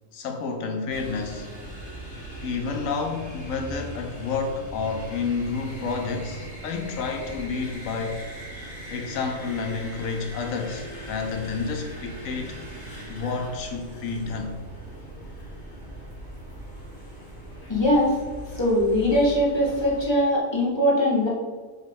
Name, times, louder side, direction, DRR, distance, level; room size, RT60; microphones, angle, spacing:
voice 1, 0.1-1.5 2.4-8.2 8.9-12.6 13.1-14.6, left 4 dB, 85° left, 3 dB, 1.2 m, -30 dB
sound 1, 0.9-20.0, equal, 60° left, 2.0 m, -39 dB
voice 2, 17.7-18.1 18.5-21.3, left 1 dB, 20° left, -6 dB, 1.7 m, -21 dB
7.8 x 3.2 x 5.2 m, 1.4 s
omnidirectional pair, 1.4 m